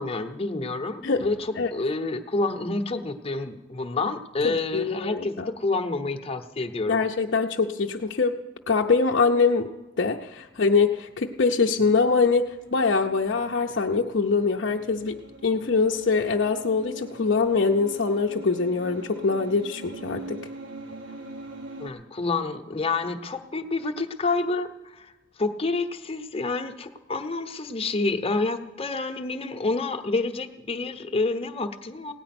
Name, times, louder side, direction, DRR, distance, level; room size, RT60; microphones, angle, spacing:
voice 1, 0.0-7.0 21.8-25.1 25.4-32.1, left 3 dB, 30° left, 6 dB, 0.8 m, -28 dB
voice 2, 4.4-5.5 6.9-8.4 8.7-9.7 10.0-20.4, left 4 dB, 60° left, 0 dB, 0.6 m, -23 dB
sound 1, 11.5-21.9, right 2 dB, 80° right, 1.6 m, -43 dB
17.0 x 9.7 x 6.0 m, 1.1 s
head